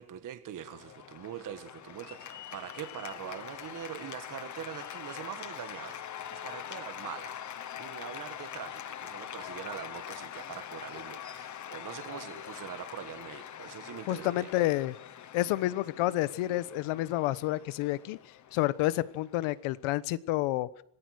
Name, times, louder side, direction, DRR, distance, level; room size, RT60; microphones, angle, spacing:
voice 1, 0.0-14.5, right 10 dB, 40° right, 9 dB, 1.5 m, -43 dB
Cheering / Applause, 0.6-19.9, left 10 dB, 35° left, 1.2 m, -44 dB
voice 2, 14.1-15.0 15.3-18.2 18.5-20.7, left 16 dB, 80° left, 17 dB, 1.2 m, -29 dB
26.5 x 19.0 x 6.5 m, 0.66 s
cardioid pair, 170°, 50 cm